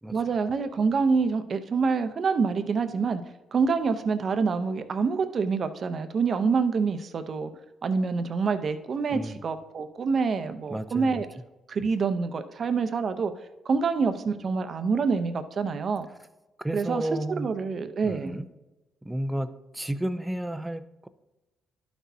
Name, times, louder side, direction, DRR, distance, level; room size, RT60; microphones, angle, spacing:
voice 1, 0.1-3.2 3.5-7.5 7.8-11.3 11.7-13.3 13.6-16.1 16.7-17.1 17.4-18.4, right 5 dB, 50° right, 9 dB, 0.7 m, -26 dB
voice 2, 10.7-11.2 16.6-17.5 18.0-18.5 19.0-21.1, right 1 dB, 10° right, 11 dB, 0.5 m, -32 dB
11.5 x 6.1 x 2.8 m, 1.0 s
cardioid pair, 90°, 0 cm